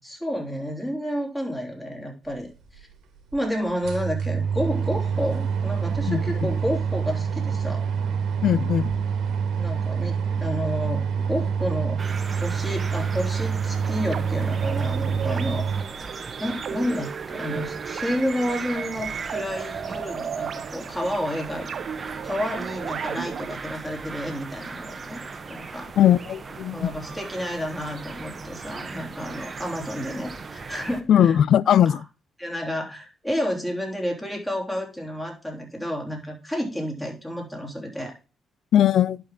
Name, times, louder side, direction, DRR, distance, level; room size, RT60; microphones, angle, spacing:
voice 1, 0.0-2.5 2.8-2.9 3.3-7.9 9.6-11.0 11.3-12.0 12.4-15.9 16.4-21.7 22.2-25.2 25.5-25.9 26.7-31.4 31.9-32.0 32.4-38.1, equal, 10° left, 3.6 m, -30 dB
sound 1, 2.6-2.7 3.3-3.4 3.7-15.8, right 6 dB, 75° right, 1.8 m, -26 dB
voice 2, 6.1-6.5 8.4-8.9 26.0-26.9 31.1-32.0 38.7-39.2, left 10 dB, 65° left, 0.4 m, -19 dB
sound 2, 12.0-31.0, right 4 dB, 35° right, 1.2 m, -38 dB
sound 3, 13.8-23.6, right 7 dB, 55° right, 0.6 m, -35 dB
11.0 x 5.2 x 3.8 m
cardioid pair, 90°, 0 cm